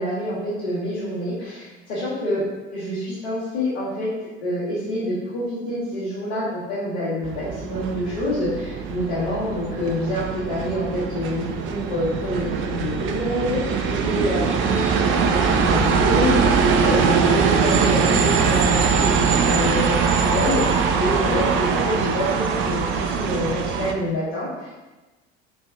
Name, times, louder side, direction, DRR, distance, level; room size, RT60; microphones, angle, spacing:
voice 1, 0.0-2.4 2.7-4.1 4.4-24.7, left 1 dB, 70° left, -10 dB, 1.3 m, -27 dB
sound 1, 7.2-23.9, right 6 dB, 40° right, 0.5 m, -22 dB
3.5 x 3.3 x 3.5 m, 1.1 s
figure-of-eight pair, 55°, 33 cm